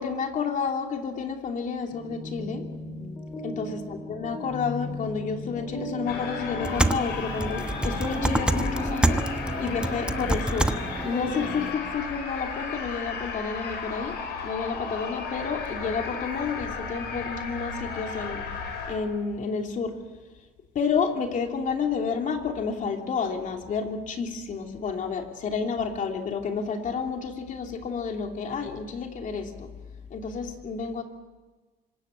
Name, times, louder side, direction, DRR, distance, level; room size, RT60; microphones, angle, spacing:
voice 1, 0.0-2.7 3.4-9.2 9.6-10.7 11.0-20.0 20.7-29.7 30.1-31.0, left 5 dB, 50° left, 3 dB, 2.9 m, -30 dB
sound 1, 1.9-11.9, left 1 dB, 20° left, 4.0 m, -37 dB
sound 2, 6.1-18.9, left 5 dB, 80° left, 7.2 m, -34 dB
sound 3, 6.6-11.7, right 1 dB, 5° right, 1.1 m, -27 dB
25.5 x 17.0 x 9.1 m, 1.3 s
cardioid pair, 110°, 17 cm